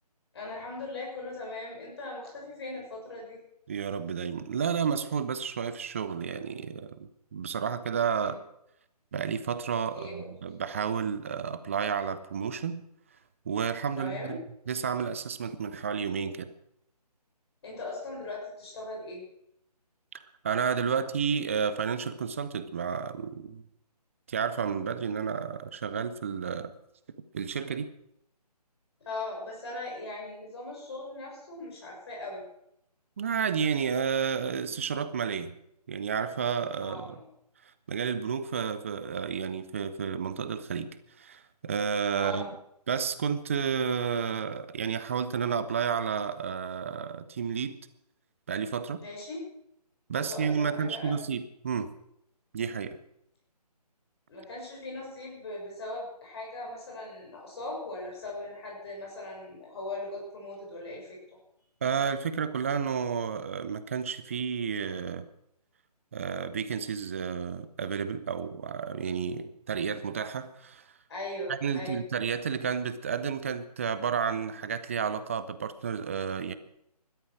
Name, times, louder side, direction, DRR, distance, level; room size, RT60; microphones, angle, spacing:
voice 1, 0.3-3.4 8.2-8.3 9.9-10.3 14.0-14.4 17.6-19.2 29.0-32.4 36.8-37.2 42.2-42.5 49.0-49.4 50.2-51.1 54.3-61.2 71.1-72.0, left 2 dB, 40° left, -2 dB, 6.8 m, -39 dB
voice 2, 3.7-8.4 9.1-12.8 13.5-16.5 20.1-23.6 24.3-26.7 27.3-27.9 33.2-35.5 35.9-37.2 37.9-42.5 42.9-47.8 48.5-49.0 50.1-51.9 52.5-53.0 61.8-65.3 66.1-70.8 71.5-76.5, right 6 dB, 20° right, 13 dB, 0.6 m, -31 dB
16.0 x 12.5 x 6.1 m, 0.76 s
figure-of-eight pair, 150°, 21 cm